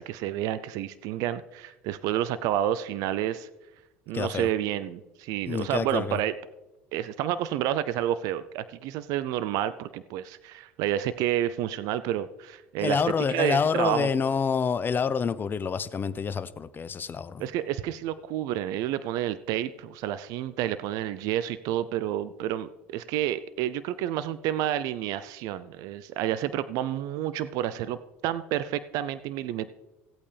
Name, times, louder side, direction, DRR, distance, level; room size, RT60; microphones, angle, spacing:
voice 1, 0.0-3.5 4.1-6.3 6.9-13.0 13.3-14.1 17.4-28.0 28.2-29.7, right 12 dB, 65° right, 14 dB, 0.5 m, -29 dB
voice 2, 4.1-4.5 5.5-6.2 12.8-17.5, left 6 dB, 30° left, 14 dB, 0.7 m, -27 dB
17.0 x 8.5 x 3.4 m, 1.0 s
hypercardioid pair, 75°, 7 cm